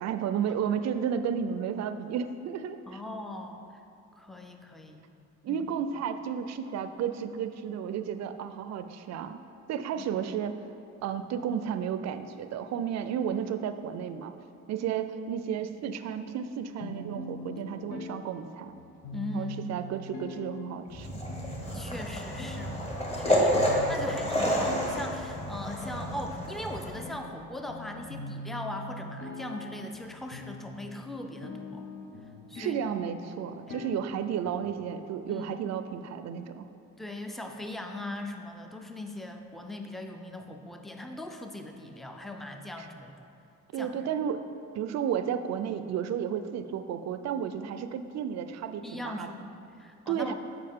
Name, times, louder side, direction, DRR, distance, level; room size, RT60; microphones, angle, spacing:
voice 1, 0.0-2.8 5.4-9.4 9.7-10.6 11.0-14.3 14.7-18.8 19.3-21.1 32.6-36.7 42.8-42.9 43.7-44.4 44.7-49.3 50.1-50.3, right 8 dB, 60° right, 10 dB, 0.5 m, -32 dB
voice 2, 2.9-3.8 4.2-5.0 5.5-5.7 10.0-10.1 19.1-19.5 21.7-22.8 23.1-31.9 32.5-32.8 33.7-33.8 35.3-35.5 37.0-43.2 43.7-44.1 48.8-50.3, left 1 dB, ahead, 4 dB, 0.4 m, -40 dB
sound 1, 16.8-34.8, left 2 dB, 70° left, 0.8 m, -43 dB
sound 2, 20.9-26.9, equal, 20° left, 1.2 m, -29 dB
7.7 x 4.8 x 3.6 m, 2.6 s
cardioid pair, 90°, 30 cm